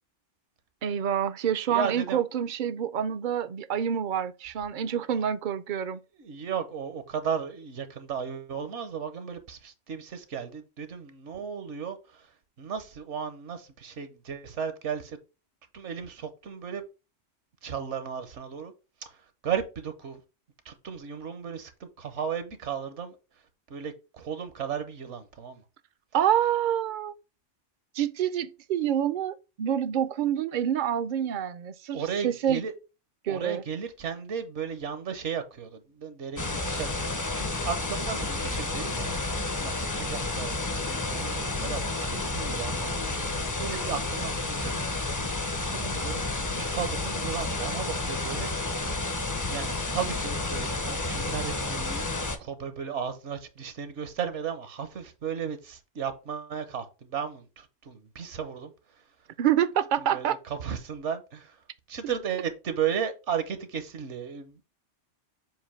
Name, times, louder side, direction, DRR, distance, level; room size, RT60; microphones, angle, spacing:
voice 1, 0.8-6.0 26.1-27.1 27.9-32.6 33.2-33.6 59.4-60.4, right 9 dB, 55° right, 0.6 m, -27 dB
voice 2, 1.7-2.2 6.1-15.2 15.7-16.8 17.6-18.7 19.0-20.2 20.6-23.2 23.7-25.6 31.9-32.7 33.3-46.2 46.5-48.5 49.5-52.1 52.4-59.0 60.0-61.6 61.9-64.6, right 7 dB, 75° right, 1.2 m, -35 dB
sound 1, 36.4-52.4, left 2 dB, 25° left, 0.5 m, -31 dB
7.4 x 2.6 x 5.7 m
omnidirectional pair, 1.2 m